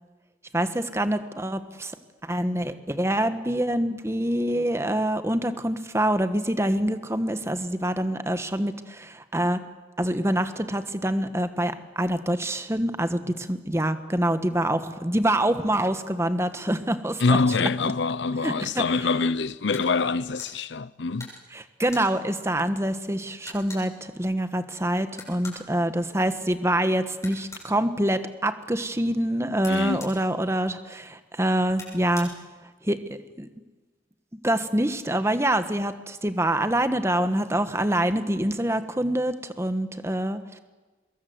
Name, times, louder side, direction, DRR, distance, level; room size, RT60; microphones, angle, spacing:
voice 1, 0.5-1.9 2.2-9.6 10.0-17.9 18.4-18.8 21.5-32.3 32.8-33.5 34.4-40.4, right 1 dB, 15° right, 1.3 m, -26 dB
voice 2, 17.2-21.3 29.7-30.0, left 4 dB, 75° left, 0.7 m, -25 dB
sound 1, 19.7-19.9 20.3-20.5 21.2-22.1 22.8-22.9 23.1-23.2 23.4-23.9 25.1-25.6 27.2-27.7 29.6-30.2 31.7-32.3, left 3 dB, 15° left, 7.1 m, -42 dB
24.0 x 22.0 x 8.0 m
head